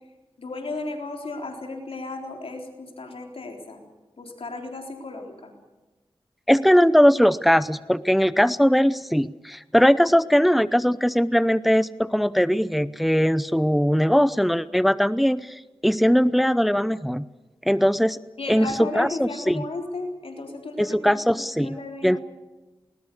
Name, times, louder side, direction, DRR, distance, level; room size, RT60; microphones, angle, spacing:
voice 1, 0.4-3.8 4.2-5.5 18.4-22.2, left 2 dB, 85° left, 3 dB, 3.8 m, -34 dB
voice 2, 6.5-17.3 17.6-18.2 18.5-19.6 20.8-21.8 22.0-22.2, equal, ahead, 16 dB, 0.6 m, -20 dB
20.5 x 19.5 x 8.3 m, 1.1 s
wide cardioid pair, 55°, 9 cm